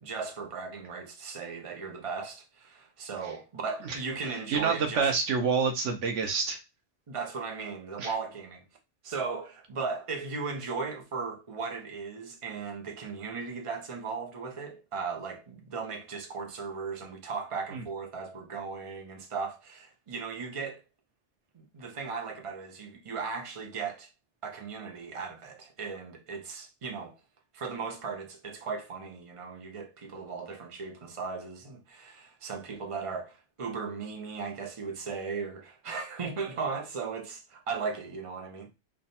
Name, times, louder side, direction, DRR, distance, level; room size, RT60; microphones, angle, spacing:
voice 1, 0.0-5.1 7.1-8.6 9.0-20.8 21.5-24.1 24.4-27.2 27.5-38.7, right 5 dB, 30° right, 0.7 m, -37 dB
voice 2, 4.5-6.6 8.0-8.1 17.7-17.8, right 5 dB, 85° right, 1.1 m, -27 dB
3.3 x 2.3 x 4.1 m
omnidirectional pair, 1.2 m